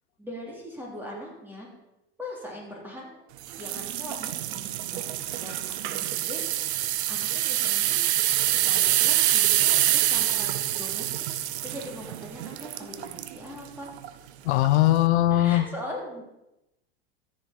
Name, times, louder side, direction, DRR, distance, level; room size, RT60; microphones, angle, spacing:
voice 1, 0.2-1.7 2.2-3.2 3.6-5.0 5.4-6.4 7.1-8.0 8.6-11.1 11.6-13.9 15.3-16.2, left 1 dB, 5° right, -2 dB, 2.9 m, -40 dB
sound 1, 3.5-13.4 13.9-14.1 14.6-14.7, right 13 dB, 85° right, 0.7 m, -26 dB
voice 2, 14.4-15.7, left 14 dB, 90° left, 13 dB, 0.7 m, -20 dB
13.5 x 6.8 x 4.1 m, 0.90 s
supercardioid pair, 120°, 32 cm